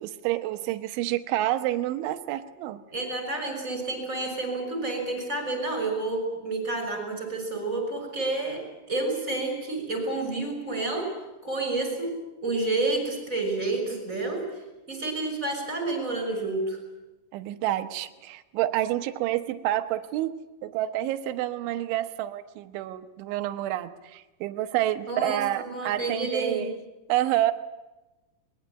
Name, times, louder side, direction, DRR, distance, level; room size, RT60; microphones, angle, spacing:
voice 1, 0.0-2.8 17.3-20.3 20.6-26.8 27.1-27.5, right 14 dB, 85° right, 8 dB, 3.4 m, -28 dB
voice 2, 2.9-8.6 8.9-11.1 11.4-12.1 12.4-14.4 14.9-16.8 25.1-26.7, right 2 dB, 15° right, 3 dB, 6.1 m, -29 dB
23.0 x 21.5 x 8.8 m, 1.0 s
omnidirectional pair, 5.4 m